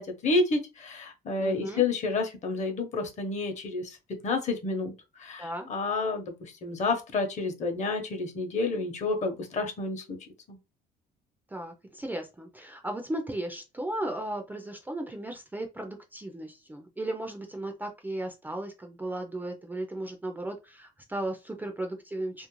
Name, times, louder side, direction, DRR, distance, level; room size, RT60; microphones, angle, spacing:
voice 1, 0.0-4.0 4.2-4.9 5.2-10.2 10.5-10.6, left 3 dB, 45° left, 0.8 m, -30 dB
voice 2, 1.4-1.8 5.4-5.7 11.5-22.5, right 1 dB, 10° right, 0.4 m, -36 dB
2.5 x 2.0 x 3.0 m
cardioid pair, 110°, 17 cm